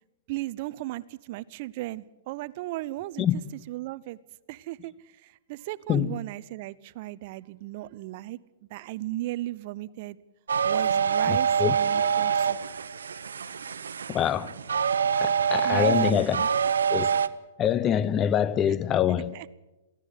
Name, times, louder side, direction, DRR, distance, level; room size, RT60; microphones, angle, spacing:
voice 1, 0.3-3.2 3.7-4.2 4.5-8.4 8.7-10.2 10.6-12.6 15.6-16.5 18.7-18.8 19.3-19.5, right 17 dB, 50° right, 0.7 m, -36 dB
sound 1, 10.5-17.3, right 7 dB, 90° right, 0.9 m, -25 dB
voice 2, 11.3-11.8 14.1-14.5 15.2-16.4 16.9-17.1 17.6-19.3, left 9 dB, 25° left, 0.8 m, -25 dB
23.0 x 16.0 x 8.3 m
hypercardioid pair, 135°, 0 cm